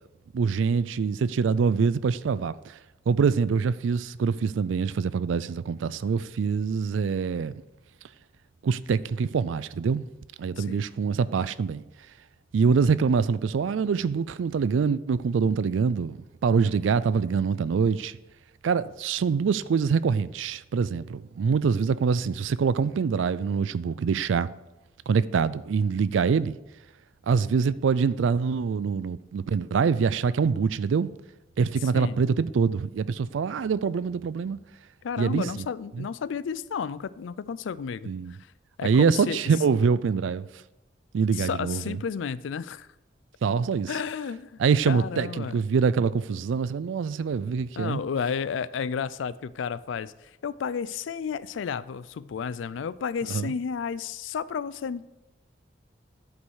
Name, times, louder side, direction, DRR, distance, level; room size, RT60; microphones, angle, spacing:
voice 1, 0.3-2.8 3.1-7.6 8.6-10.0 10.4-11.8 12.5-18.2 18.6-24.5 25.1-26.6 27.3-31.1 31.6-34.6 35.2-35.6 36.0-36.1 38.1-38.3 38.8-40.5 41.1-42.0 43.4-43.9 44.6-48.0 53.3-53.5, right 5 dB, 90° right, 0.4 m, -25 dB
voice 2, 10.6-10.9 31.9-32.2 35.0-38.1 38.8-39.4 41.3-42.9 43.9-45.6 47.8-55.0, left 6 dB, 90° left, 0.4 m, -32 dB
11.5 x 5.3 x 4.8 m
head